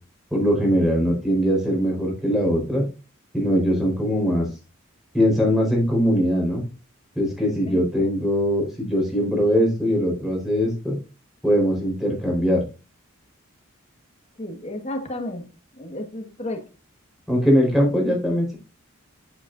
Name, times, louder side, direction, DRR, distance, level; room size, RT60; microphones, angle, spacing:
voice 1, 0.3-2.8 3.3-4.4 5.1-6.6 7.2-11.0 11.4-12.6 17.3-18.5, equal, ahead, -1 dB, 4.4 m, -21 dB
voice 2, 14.4-15.5 15.8-16.6, left 1 dB, 35° left, 4 dB, 1.6 m, -32 dB
8.4 x 7.9 x 2.6 m, 0.31 s
head